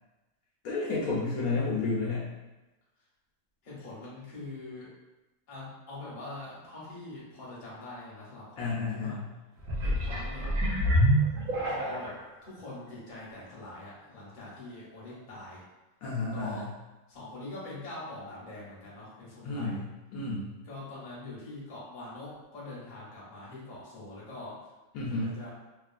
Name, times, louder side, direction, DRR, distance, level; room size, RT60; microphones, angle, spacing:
voice 1, 0.6-2.3 8.6-9.3 16.0-16.7 19.4-19.9 20.1-20.5 24.9-25.3, left 3 dB, 70° left, -6 dB, 1.0 m, -31 dB
voice 2, 3.6-4.9 5.5-9.2 9.8-10.5 11.6-12.2 12.4-15.6 16.3-16.7 17.1-19.8 20.6-24.6 25.1-25.5, left 2 dB, 40° left, -7 dB, 0.9 m, -43 dB
sound 1, 9.6-12.2 12.8-12.9, equal, 65° right, 0.6 m, -27 dB
2.9 x 2.4 x 2.4 m, 1.1 s
omnidirectional pair, 1.7 m